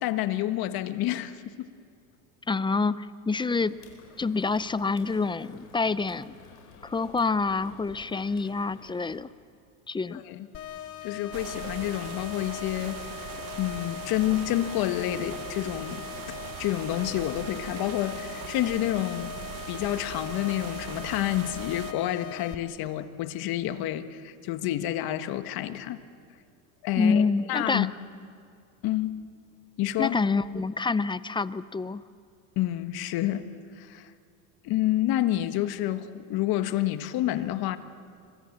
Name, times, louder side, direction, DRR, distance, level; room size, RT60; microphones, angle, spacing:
voice 1, 0.0-1.7 10.1-10.5 11.0-13.0 13.6-19.3 19.7-26.0 26.8-27.9 28.8-29.2 29.8-30.2 32.5-33.5 33.8-34.1 34.6-37.8, left 13 dB, 55° left, 10 dB, 1.6 m, -29 dB
voice 2, 2.5-3.8 4.2-6.4 6.8-9.3 9.9-10.2 27.0-27.9 30.0-32.0, left 4 dB, 10° left, 17 dB, 0.5 m, -27 dB
sound 1, 3.5-9.2, left 5 dB, 85° left, 4.6 m, -51 dB
sound 2, 10.5-22.5, left 11 dB, 30° left, 1.3 m, -40 dB
sound 3, 11.3-21.9, right 16 dB, 60° right, 1.0 m, -41 dB
27.0 x 24.0 x 7.5 m, 2.4 s
hypercardioid pair, 95°, 45 cm